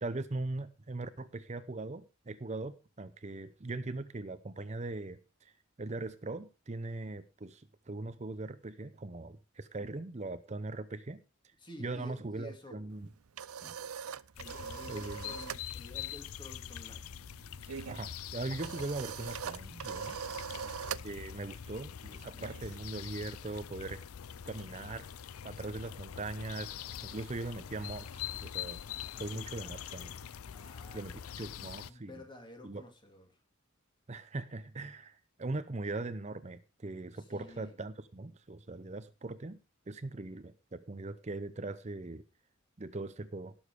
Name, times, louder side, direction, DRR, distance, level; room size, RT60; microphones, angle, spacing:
voice 1, 0.0-5.5 5.8-11.2 11.4-11.5 11.8-13.1 13.6-13.8 14.9-15.3 17.9-20.2 21.0-24.0 24.5-25.1 25.4-28.8 29.1-30.1 30.9-32.2 32.6-32.8 34.1-39.6 39.9-42.2 42.8-43.6, right 2 dB, 30° right, 13 dB, 0.6 m, -40 dB
voice 2, 11.6-13.0 14.4-17.2 20.5-20.8 29.3-29.7 30.5-33.3 37.2-37.8, left 1 dB, 20° left, 4 dB, 2.8 m, -52 dB
sound 1, 13.0-15.7 16.0-16.3 16.5-23.2, right 7 dB, 90° right, 0.5 m, -43 dB
sound 2, 14.3-31.9, left 9 dB, 85° left, 0.5 m, -44 dB
18.0 x 7.2 x 4.9 m, 0.33 s
head